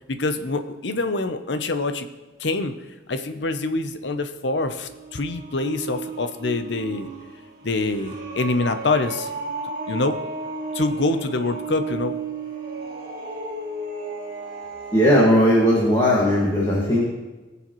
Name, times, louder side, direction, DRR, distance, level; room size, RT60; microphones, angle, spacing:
voice 1, 0.1-2.1 2.4-2.7 3.1-7.1 7.6-9.3 9.9-10.2 10.7-12.1, left 3 dB, 65° left, 9 dB, 0.8 m, -25 dB
sound 1, 4.8-15.2, right 3 dB, 45° right, 2.0 m, -34 dB
voice 2, 14.9-17.0, equal, 20° left, -5 dB, 2.0 m, -17 dB
20.0 x 7.0 x 3.1 m, 1.2 s
head